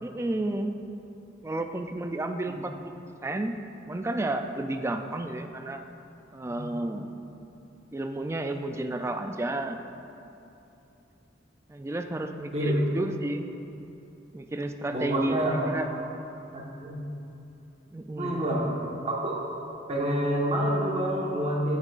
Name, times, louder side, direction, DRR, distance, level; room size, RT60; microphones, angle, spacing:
voice 1, 0.0-0.8 1.4-2.9 3.2-3.6 3.9-5.8 6.3-7.1 7.9-9.8 11.7-13.5 14.3-15.9 17.9-18.5, right 2 dB, 15° right, 6 dB, 0.3 m, -32 dB
voice 2, 6.5-6.8 12.5-12.8 14.9-16.0 16.5-17.1 18.2-18.7 19.0-19.4 19.9-21.8, right 1 dB, 35° right, -3 dB, 1.2 m, -28 dB
9.6 x 9.0 x 2.5 m, 2.8 s
head